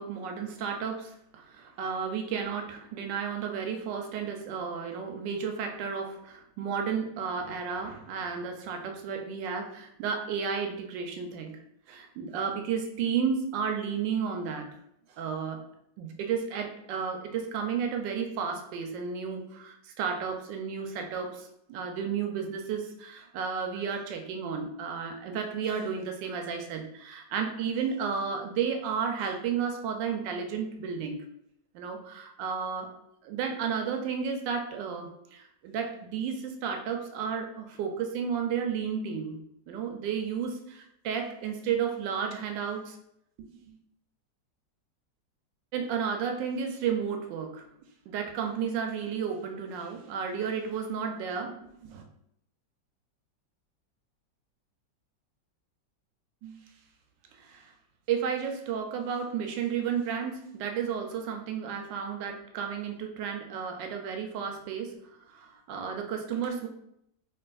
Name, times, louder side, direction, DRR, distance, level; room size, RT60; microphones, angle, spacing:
voice 1, 0.0-11.6 11.9-14.7 15.2-15.6 16.0-31.2 31.7-32.9 33.2-43.0 43.4-43.5 45.7-47.7 48.1-52.0 56.4-56.6 57.4-57.7 58.1-64.9 65.3-66.7, right 6 dB, 85° right, 4 dB, 1.3 m, -32 dB
3.3 x 3.0 x 2.2 m, 0.75 s
omnidirectional pair, 1.9 m